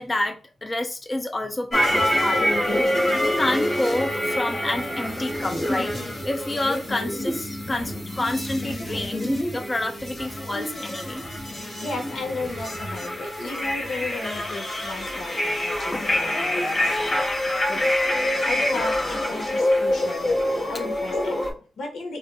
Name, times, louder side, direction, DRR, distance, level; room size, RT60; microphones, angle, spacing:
voice 1, 0.0-2.7 3.2-5.9 6.3-9.2 9.5-11.2 15.1-15.2 15.9-16.1 18.7-18.9, left 1 dB, 20° left, 5 dB, 0.4 m, -28 dB
sound 1, 1.7-21.5, left 1 dB, 45° left, 1.6 m, -26 dB
voice 2, 11.5-17.9 18.4-22.2, left 3 dB, 80° left, 2 dB, 1.2 m, -35 dB
4.0 x 2.7 x 2.3 m, 0.38 s
wide cardioid pair, 120°, 0 cm